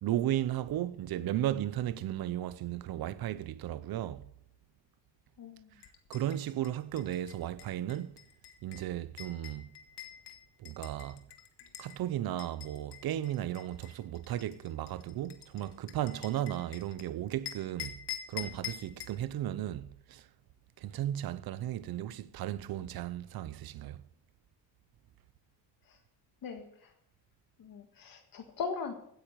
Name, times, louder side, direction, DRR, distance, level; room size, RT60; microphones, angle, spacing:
voice 1, 0.0-4.2 6.1-8.2 8.6-9.7 10.6-11.3 11.8-18.0 18.3-20.3 20.8-24.0, right 12 dB, 55° right, 0.8 m, -35 dB
voice 2, 5.4-5.7 25.9-26.0 26.4-26.9 27.6-28.9, left 5 dB, 55° left, 1.7 m, -40 dB
sound 1, 5.8-12.0 12.4-17.0 17.5-19.2, left 10 dB, 70° left, 1.8 m, -46 dB
16.0 x 10.0 x 4.7 m
cardioid pair, 165°, 43 cm